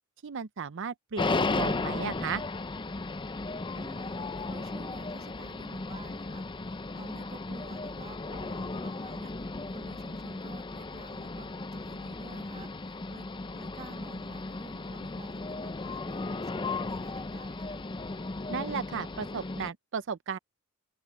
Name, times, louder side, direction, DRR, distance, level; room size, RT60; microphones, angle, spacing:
voice 1, 0.2-2.4 18.5-20.4, right 6 dB, 60° right, 0.6 m, -35 dB
sound 1, 1.2-19.7, left 3 dB, 20° left, 0.5 m, -35 dB
voice 2, 3.7-13.3 13.5-17.8, right 2 dB, 30° right, 2.2 m, -51 dB
head